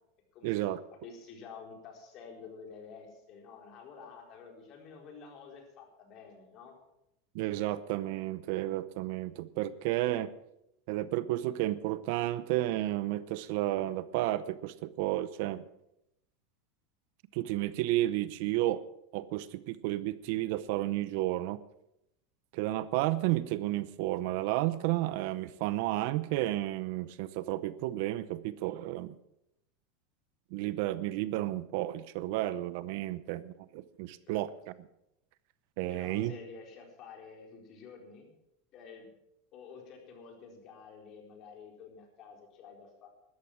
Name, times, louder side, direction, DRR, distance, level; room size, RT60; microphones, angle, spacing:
voice 1, 0.4-0.8 7.3-10.3 10.9-15.6 17.3-18.8 19.1-21.6 22.5-29.1 30.5-34.7 35.8-36.3, right 15 dB, 65° right, 16 dB, 0.7 m, -32 dB
voice 2, 1.0-6.7 34.3-34.4 35.9-38.3 38.7-39.1 39.5-43.1, left 5 dB, 45° left, 2 dB, 4.3 m, -50 dB
13.5 x 12.0 x 6.2 m, 0.82 s
supercardioid pair, 135°, 0 cm